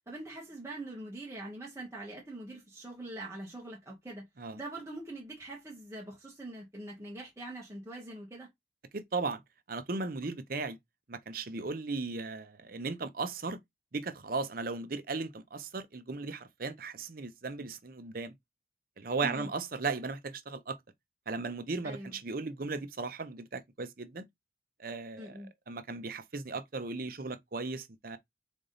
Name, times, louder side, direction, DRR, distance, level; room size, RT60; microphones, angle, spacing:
voice 1, 0.1-4.2 4.5-8.5 19.2-19.5 21.8-22.1 25.2-25.5, right 2 dB, 15° right, 1.2 m, -43 dB
voice 2, 8.9-9.4 9.7-10.8 11.1-13.6 13.9-18.3 19.0-20.8 21.3-24.2 24.8-25.4 25.7-28.2, right 3 dB, 50° right, 0.7 m, -36 dB
3.9 x 3.5 x 3.8 m
head